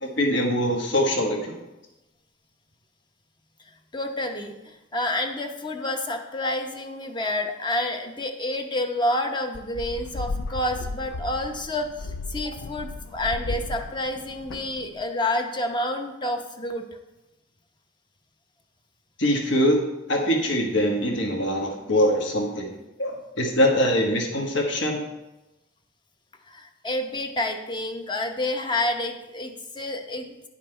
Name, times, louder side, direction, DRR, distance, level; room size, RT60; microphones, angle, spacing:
voice 1, 0.0-1.6 19.2-19.8 20.1-25.0, equal, 65° left, 1 dB, 1.4 m, -23 dB
voice 2, 3.9-4.5 4.9-16.8 26.5-30.3, left 1 dB, 25° left, 4 dB, 0.9 m, -29 dB
sound 1, 9.5-15.0, left 3 dB, 85° left, 0.5 m, -35 dB
10.0 x 5.9 x 4.5 m, 1.0 s
head